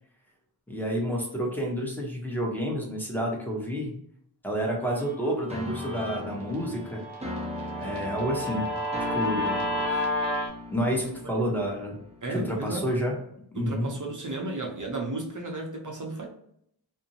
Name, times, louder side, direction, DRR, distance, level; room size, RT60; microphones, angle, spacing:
voice 1, 0.7-3.9 4.4-7.0 7.8-8.7 9.1-9.6 10.7-12.0 12.3-13.1 13.5-13.9, equal, 5° left, -1 dB, 0.9 m, -29 dB
Guitar, 5.0-10.5, left 1 dB, 85° right, 0.9 m, -32 dB
sound 1, 5.5-12.3, left 2 dB, 15° right, 0.5 m, -39 dB
voice 2, 9.3-10.0 10.9-11.1 11.4-11.6 12.2-12.9 13.5-16.3, right 2 dB, 50° right, 1 dB, 0.7 m, -34 dB
2.6 x 2.1 x 2.8 m, 0.70 s
wide cardioid pair, 45°, 41 cm